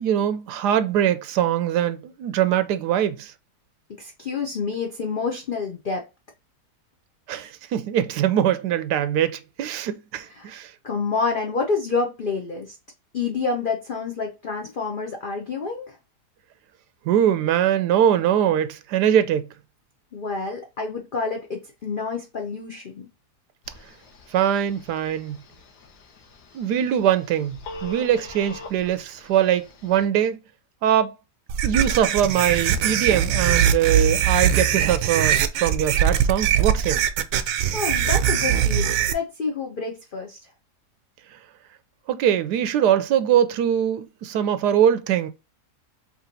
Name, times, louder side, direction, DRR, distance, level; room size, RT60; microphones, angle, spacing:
voice 1, 0.0-3.3 7.3-10.7 17.1-19.5 24.3-25.4 26.5-30.4 30.8-31.1 31.6-37.0 42.1-45.3, right 10 dB, 90° right, 1.2 m, -22 dB
voice 2, 4.0-6.0 10.3-10.5 10.8-12.8 13.1-16.0 20.1-23.1 37.7-40.4, left 4 dB, 50° left, 0.6 m, -28 dB
Telephone, 23.6-30.0, left 2 dB, 80° left, 1.5 m, -43 dB
sound 1, 31.5-39.1, right 9 dB, 70° right, 0.9 m, -21 dB
4.9 x 3.1 x 2.6 m
omnidirectional pair, 1.7 m